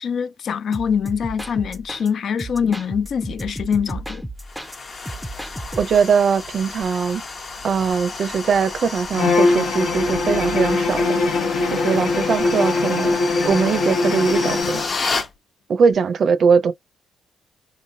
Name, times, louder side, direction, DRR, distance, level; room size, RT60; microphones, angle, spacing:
voice 1, 0.0-4.3, left 7 dB, 60° left, 0.4 m, -24 dB
sound 1, 0.7-2.1 2.4-4.8 5.1-6.1, right 1 dB, ahead, 0.5 m, -34 dB
sound 2, 4.4-15.3, left 4 dB, 40° left, 0.8 m, -31 dB
voice 2, 5.7-7.2 7.6-11.0 11.7-13.2 13.4-14.8 15.7-16.7, right 6 dB, 55° right, 0.5 m, -20 dB
Bowed string instrument, 9.1-15.0, left 3 dB, 75° left, 0.9 m, -21 dB
3.2 x 2.3 x 2.7 m
cardioid pair, 90°, 0 cm